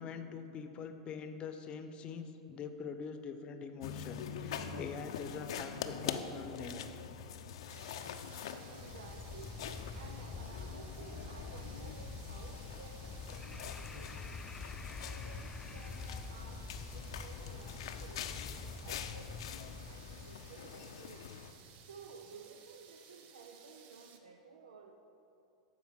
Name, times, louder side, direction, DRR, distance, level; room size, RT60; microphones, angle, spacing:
voice 1, 0.0-7.0, left 6 dB, 35° left, 8 dB, 0.8 m, -44 dB
sound 1, 3.8-21.5, left 7 dB, 70° left, 0.6 m, -45 dB
sound 2, 7.7-24.2, right 7 dB, 45° right, 0.9 m, -59 dB
sound 3, 8.7-20.6, left 4 dB, 15° left, 0.3 m, -46 dB
voice 2, 8.7-9.7 9.9-21.3 21.8-25.0, right 4 dB, 75° right, 4 dB, 0.6 m, -55 dB
13.0 x 4.5 x 6.4 m, 2.9 s
hypercardioid pair, 100°, 3 cm